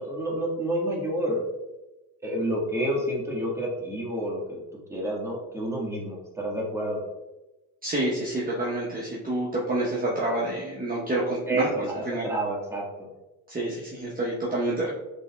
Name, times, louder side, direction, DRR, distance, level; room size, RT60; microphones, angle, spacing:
voice 1, 0.0-1.4 2.2-4.6 4.9-7.0 11.5-13.1, right 1 dB, 10° right, -4 dB, 1.5 m, -29 dB
voice 2, 7.8-11.7 12.1-12.3 13.5-15.0, right 1 dB, 25° right, -5 dB, 0.9 m, -28 dB
5.2 x 3.3 x 2.3 m, 1.0 s
supercardioid pair, 70°, 35 cm